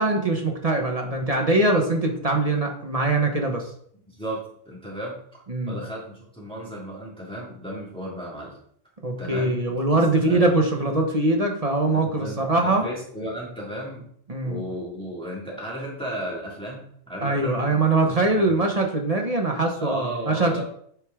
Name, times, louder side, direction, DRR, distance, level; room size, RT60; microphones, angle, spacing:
voice 1, 0.0-3.7 5.5-5.7 9.0-12.8 14.3-14.6 17.2-20.6, right 2 dB, 35° right, 2 dB, 1.0 m, -22 dB
voice 2, 4.1-8.6 9.2-10.5 11.9-14.1 14.4-17.8 18.4-18.6 19.8-20.6, right 1 dB, 5° left, -5 dB, 2.2 m, -35 dB
9.0 x 4.7 x 3.6 m, 0.64 s
omnidirectional pair, 1.2 m